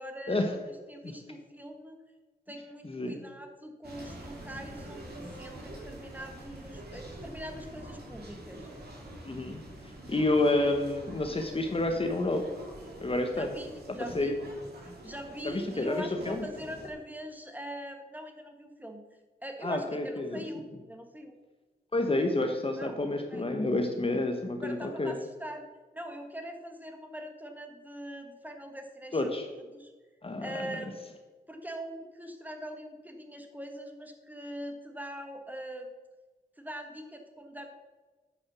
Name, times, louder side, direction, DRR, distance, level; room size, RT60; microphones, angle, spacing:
voice 1, 0.0-0.4 0.7-2.0 2.5-8.7 13.3-14.3 15.0-19.0 19.4-21.3 22.8-23.0 23.3-23.5 24.6-25.7 25.9-29.9 30.4-30.9 31.5-35.9 36.6-37.7, equal, 10° right, 4 dB, 1.5 m, -42 dB
voice 2, 2.8-3.2 9.2-9.6 10.1-12.5 13.0-13.5 13.9-14.3 15.4-16.5 19.6-20.4 21.9-25.1 29.1-29.5 30.2-30.8, left 2 dB, 35° left, 5 dB, 1.1 m, -29 dB
sound 1, 3.8-16.9, right 1 dB, 70° right, 2.6 m, -46 dB
9.6 x 6.1 x 6.2 m, 1.3 s
wide cardioid pair, 80°, 17 cm